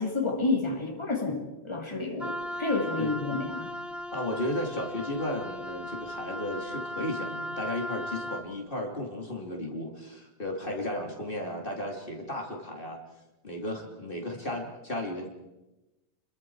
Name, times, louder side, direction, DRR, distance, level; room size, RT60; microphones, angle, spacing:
voice 1, 0.0-3.7, left 3 dB, 25° left, 2 dB, 2.8 m, -30 dB
Wind instrument woodwind instrument, 2.2-8.5, equal, ahead, 1.0 m, -37 dB
voice 2, 4.1-13.0 13.4-15.3, left 1 dB, 50° left, 1 dB, 2.9 m, -34 dB
28.5 x 22.0 x 4.7 m, 1.0 s
omnidirectional pair, 1.2 m